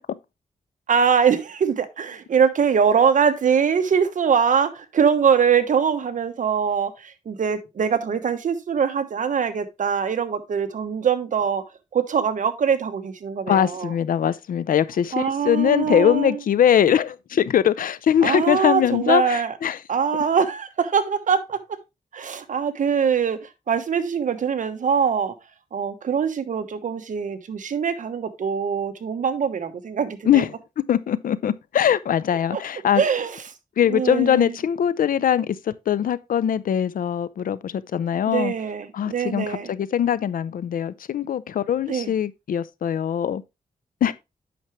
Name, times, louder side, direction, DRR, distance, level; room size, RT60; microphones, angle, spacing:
voice 1, 0.9-11.6 11.9-13.9 15.1-16.4 18.2-19.5 19.9-21.6 22.1-23.4 23.7-25.3 25.7-30.4 32.5-32.6 33.0-33.4 33.9-34.6 38.3-39.7 41.9-42.1, right 7 dB, 65° right, 1.1 m, -23 dB
voice 2, 13.5-19.8 30.3-30.5 30.9-33.0 33.8-35.6 35.9-38.5 38.9-43.4 44.0-44.1, left 9 dB, 80° left, 0.5 m, -21 dB
8.5 x 5.9 x 3.1 m
wide cardioid pair, 110°, 14 cm